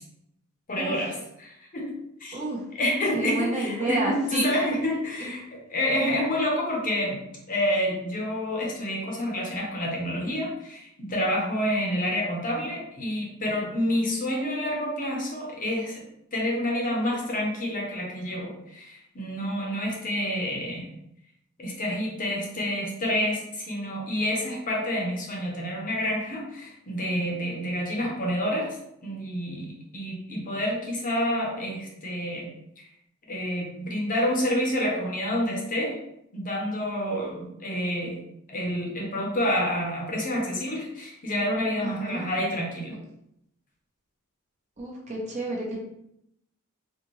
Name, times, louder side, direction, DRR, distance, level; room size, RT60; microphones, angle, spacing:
voice 1, 0.7-1.9 2.2-2.4 2.7-7.2 7.5-16.0 16.3-20.9 21.6-28.8 29.0-32.5 32.8-32.9 33.3-36.0 36.3-38.2 38.5-42.9, equal, 40° left, -2 dB, 0.9 m, -28 dB
voice 2, 3.1-4.5 5.2-5.3 41.8-42.2 44.8-45.8, right 2 dB, 35° right, -3 dB, 1.0 m, -30 dB
4.2 x 2.4 x 3.1 m, 0.78 s
head